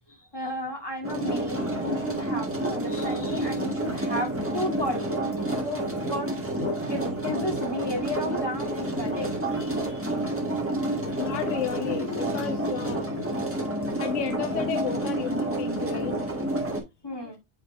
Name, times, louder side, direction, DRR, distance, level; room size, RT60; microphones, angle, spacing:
voice 1, 0.1-6.3 6.9-10.0 17.0-17.4, left 1 dB, 20° left, 2.1 m, -34 dB
sound 1, 1.0-16.8, right 1 dB, 10° right, 1.4 m, -29 dB
voice 2, 7.1-7.4 11.1-13.3 14.0-16.5 16.7-16.8 17.2-17.4, left 8 dB, 70° left, 1.1 m, -33 dB
7.5 x 4.9 x 2.6 m
omnidirectional pair, 1.3 m